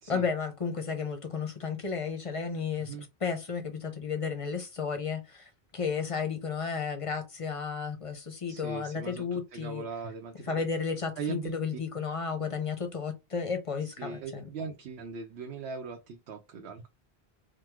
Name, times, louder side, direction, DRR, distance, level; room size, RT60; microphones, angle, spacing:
voice 1, 0.1-3.0 3.2-9.8 10.5-14.5, left 5 dB, 40° left, 0.6 m, -33 dB
voice 2, 8.5-10.6 11.2-11.6 13.8-16.9, right 5 dB, 90° right, 0.8 m, -39 dB
3.0 x 2.2 x 3.3 m
omnidirectional pair, 1.1 m